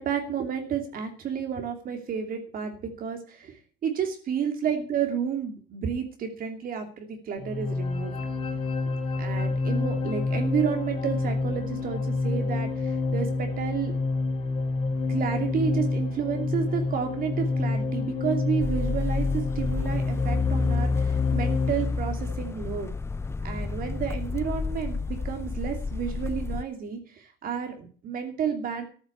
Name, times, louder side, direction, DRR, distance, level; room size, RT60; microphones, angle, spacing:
voice 1, 0.0-8.1 9.2-13.9 15.1-22.9 23.4-28.9, right 7 dB, 60° right, 5 dB, 2.9 m, -31 dB
sound 1, 7.4-21.7, left 3 dB, 35° left, 3.8 m, -28 dB
sound 2, 18.6-26.6, left 4 dB, 15° left, 0.5 m, -29 dB
14.0 x 6.6 x 8.6 m, 0.42 s
cardioid pair, 110°, 17 cm